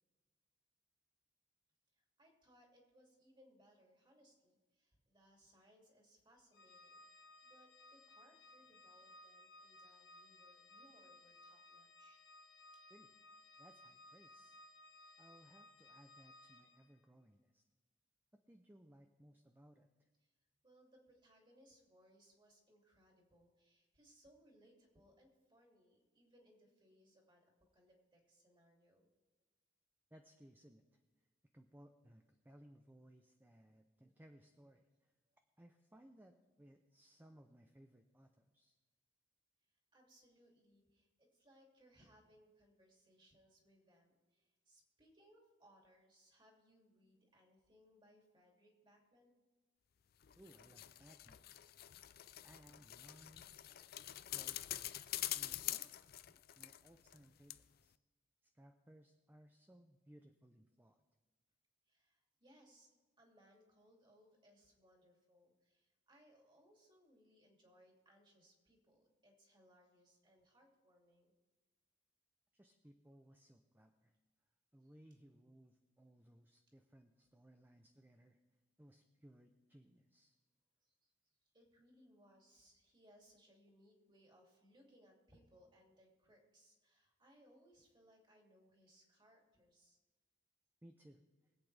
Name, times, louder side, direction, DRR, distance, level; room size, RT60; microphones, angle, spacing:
voice 1, 1.9-12.2 20.2-20.3 20.6-27.4 27.7-29.1 39.9-49.3 61.9-62.9 63.2-71.3 74.8-74.9 80.8-81.1 81.5-90.0, equal, 25° right, 0 dB, 2.7 m, -69 dB
Organ, 6.5-16.9, left 2 dB, 85° left, 1.2 m, -61 dB
voice 2, 13.6-14.6 15.2-17.6 18.3-20.1 30.1-31.0 31.5-34.9 35.6-38.7 50.3-51.8 52.4-53.5 54.3-54.9 55.3-56.0 56.3-57.9 58.5-61.0 72.5-74.1 74.7-78.4 78.8-80.4 90.8-91.2, right 1 dB, 10° right, 5 dB, 0.6 m, -63 dB
sound 1, 50.2-57.2 57.5-57.6, left 14 dB, 55° left, 0.4 m, -45 dB
23.5 x 8.4 x 3.4 m, 1.2 s
head